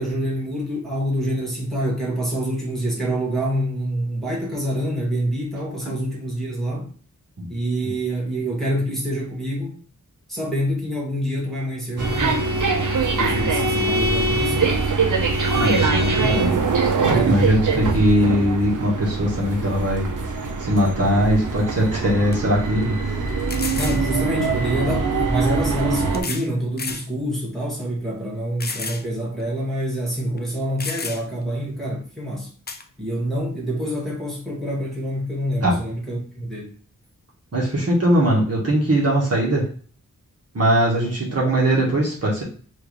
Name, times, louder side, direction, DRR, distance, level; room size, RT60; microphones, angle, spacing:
voice 1, 0.0-6.9 7.5-9.8 10.3-12.4 13.1-14.7 17.1-17.8 23.8-32.5 33.0-36.7, equal, ahead, 1.7 m, -26 dB
Bowed string instrument, 12.0-16.7, left 3 dB, 30° right, 1.1 m, -27 dB
sound 1, 12.0-26.2, right 4 dB, 70° right, 0.7 m, -23 dB
voice 2, 15.5-16.5 17.0-20.1 20.6-22.9 35.6-35.8 37.5-39.6 40.5-42.4, equal, 50° right, 1.3 m, -20 dB
sound 2, 21.7-21.8 22.3-22.4 23.5-24.0 25.2-25.3 26.1-26.5 26.8-27.1 27.6-27.7 28.6-29.1 29.4-29.5 30.4-30.5 30.8-31.4 32.7-32.8, left 4 dB, 30° left, 0.5 m, -31 dB
4.5 x 2.6 x 3.2 m
wide cardioid pair, 95°, 32 cm